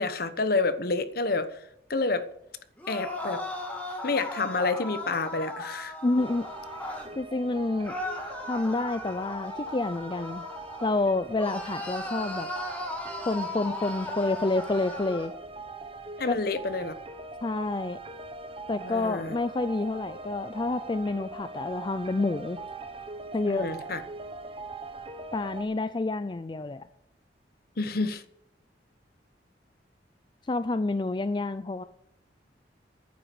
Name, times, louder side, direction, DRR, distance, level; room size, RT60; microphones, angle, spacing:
voice 1, 0.0-1.6 1.9-2.3 2.9-3.4 4.0-5.9 16.2-16.9 18.8-19.4 23.5-24.0 27.8-28.2, left 3 dB, 55° left, 12 dB, 1.0 m, -28 dB
sound 1, 2.8-7.1 7.8-11.0 11.4-15.3, left 1 dB, 10° left, 2.4 m, -37 dB
voice 2, 6.0-6.5 7.2-8.0 8.5-10.4 10.8-12.5 13.3-15.3 16.3-16.4 17.4-18.0 18.7-22.6 23.3-23.7 25.3-26.8 30.5-31.8, left 2 dB, 25° left, 12 dB, 0.4 m, -28 dB
sound 2, 6.2-25.6, right 3 dB, 30° right, 1.1 m, -42 dB
10.5 x 9.1 x 8.6 m, 0.76 s
head